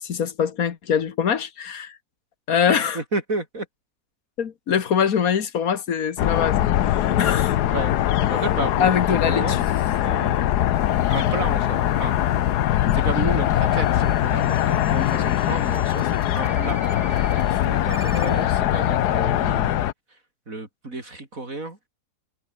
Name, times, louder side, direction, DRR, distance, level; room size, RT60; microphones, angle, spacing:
voice 1, 0.0-2.0 2.5-3.0 4.4-7.6 8.8-9.7 18.1-18.4, left 7 dB, 65° left, 1.8 m, -23 dB
voice 2, 2.7-3.7 7.2-7.4 7.6-7.9 8.3-9.6 9.9-10.5 11.1-12.1 12.9-16.8 17.1-19.8 20.1-20.2 20.5-21.8, right 2 dB, 55° right, 4.7 m, -32 dB
sound 1, 6.2-19.9, left 12 dB, 85° left, 1.4 m, -22 dB
sound 2, 8.9-18.5, right 3 dB, 25° right, 1.5 m, -43 dB
omnidirectional pair, 1.7 m